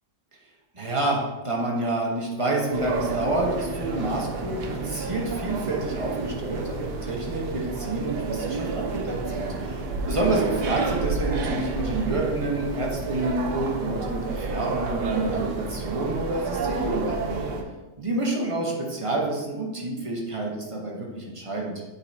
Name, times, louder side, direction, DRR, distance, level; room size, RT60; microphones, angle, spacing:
voice 1, 0.7-17.4 18.0-21.7, right 2 dB, 20° right, -2 dB, 1.0 m, -28 dB
sound 1, 2.7-17.6, right 3 dB, 75° right, 1.3 m, -30 dB
7.8 x 5.5 x 2.8 m, 1.1 s
omnidirectional pair, 1.8 m